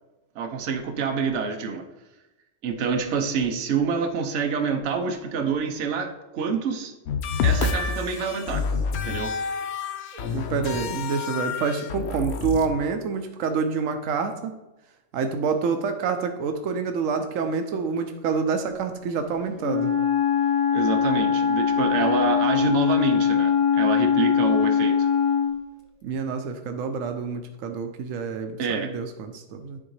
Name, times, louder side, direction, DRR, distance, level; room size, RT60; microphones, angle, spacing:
voice 1, 0.3-1.8 2.6-6.9 7.4-8.7 9.0-9.3 20.7-25.1 28.6-28.9, right 5 dB, 70° right, 5 dB, 1.0 m, -27 dB
sound 1, 7.0-12.7, left 5 dB, 65° left, 0.8 m, -28 dB
voice 2, 10.1-14.6 15.1-19.9 26.0-29.8, right 5 dB, 90° right, 7 dB, 1.0 m, -27 dB
Wind instrument woodwind instrument, 19.6-25.6, left 7 dB, 45° left, 0.4 m, -22 dB
10.0 x 3.7 x 3.1 m, 0.99 s
omnidirectional pair, 1.3 m